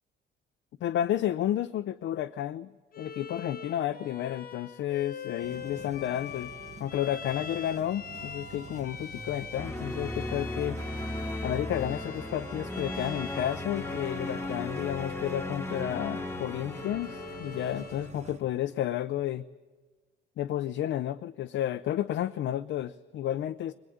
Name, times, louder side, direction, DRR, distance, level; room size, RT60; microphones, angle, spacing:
voice 1, 0.8-2.7 3.0-6.5 6.8-10.8 11.4-19.4 20.4-23.7, left 11 dB, 75° left, 9 dB, 0.7 m, -31 dB
Bowed string instrument, 2.9-18.2, left 6 dB, 45° left, 1.4 m, -44 dB
sound 1, 5.4-18.4, right 5 dB, 35° right, 1.2 m, -47 dB
sound 2, 9.6-18.4, left 1 dB, 10° left, 1.5 m, -37 dB
21.5 x 21.5 x 9.4 m, 1.4 s
cardioid pair, 90°, 20 cm